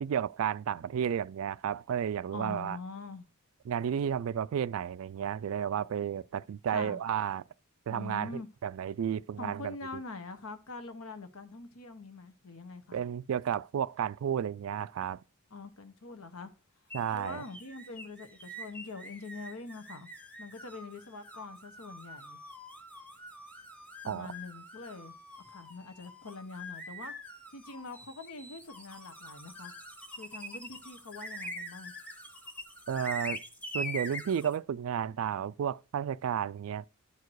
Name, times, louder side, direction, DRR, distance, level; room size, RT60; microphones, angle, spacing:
voice 1, 0.0-2.8 3.7-7.4 7.9-8.3 8.6-9.8 12.9-15.2 16.9-17.4 24.1-24.3 32.9-33.4 33.7-36.9, right 8 dB, 70° right, 0.3 m, -32 dB
voice 2, 2.3-3.3 6.7-7.0 7.9-8.5 9.4-13.0 15.5-16.5 17.1-20.1 20.4-22.4 24.0-25.1 25.4-27.2 27.5-29.8 30.2-31.9, left 3 dB, 75° left, 1.1 m, -44 dB
sound 1, 16.9-34.6, equal, 5° left, 0.9 m, -44 dB
11.5 x 4.7 x 4.6 m
head